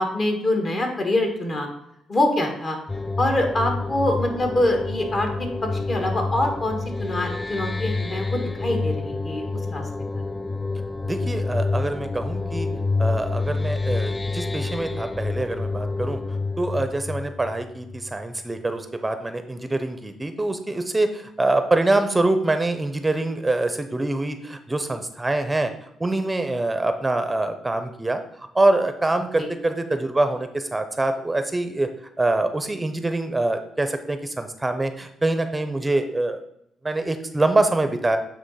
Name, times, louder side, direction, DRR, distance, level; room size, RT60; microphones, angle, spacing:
voice 1, 0.0-1.7 2.1-2.8 3.2-5.3 5.9-9.4 9.7-9.8 29.4-29.5, left 1 dB, 40° left, 3 dB, 1.7 m, -24 dB
sound 1, 2.9-18.3, left 3 dB, 15° left, 0.3 m, -28 dB
voice 2, 11.0-12.7 13.0-16.2 16.6-31.9 32.2-36.4 36.8-38.2, right 2 dB, 15° right, 8 dB, 0.7 m, -24 dB
8.7 x 3.0 x 5.6 m, 0.77 s
cardioid pair, 90°, 0 cm